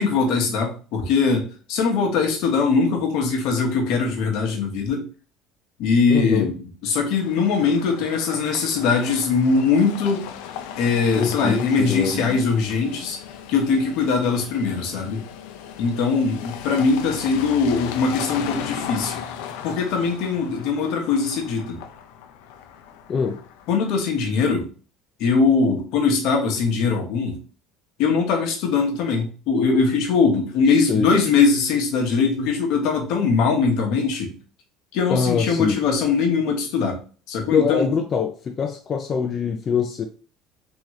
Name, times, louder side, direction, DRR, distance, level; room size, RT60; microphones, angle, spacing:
voice 1, 0.0-5.0 5.8-6.5 6.8-10.3 10.8-13.2 13.5-15.2 15.8-19.2 19.6-21.8 23.7-24.7 25.2-27.4 28.0-34.3 34.9-37.0 37.3-37.9, left 5 dB, 65° left, 2 dB, 1.1 m, -21 dB
voice 2, 6.1-6.5 11.2-12.4 23.1-23.4 30.7-31.2 35.1-35.8 37.5-40.0, left 6 dB, 30° left, 4 dB, 0.4 m, -24 dB
sound 1, 7.1-24.1, left 8 dB, 90° left, 0.5 m, -37 dB
3.6 x 3.1 x 3.1 m, 0.39 s
cardioid pair, 140°, 0 cm